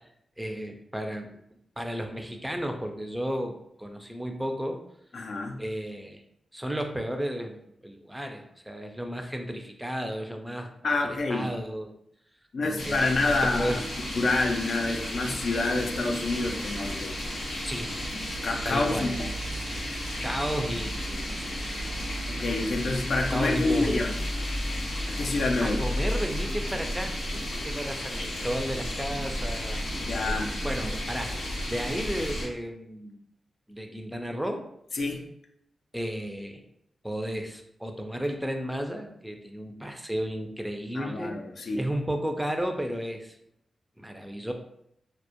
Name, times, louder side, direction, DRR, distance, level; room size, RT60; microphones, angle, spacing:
voice 1, 0.4-1.3 1.8-4.8 5.6-6.2 6.5-7.6 7.8-11.9 12.6-13.8 17.6-18.0 18.6-19.1 20.2-22.1 23.3-24.1 25.6-33.2 33.7-34.7 35.9-36.6 37.0-41.4 41.8-43.4 44.0-44.5, equal, 10° right, 4 dB, 0.4 m, -33 dB
voice 2, 5.1-5.6 10.8-11.5 12.5-13.8 14.1-17.1 18.4-19.3 22.3-24.1 25.1-25.8 30.1-30.5 34.9-35.3 40.9-41.8, left 3 dB, 70° left, 2 dB, 0.3 m, -27 dB
sound 1, 12.8-32.5, equal, 90° left, 0.7 m, -33 dB
2.2 x 2.0 x 2.7 m, 0.74 s
cardioid pair, 60°, 0 cm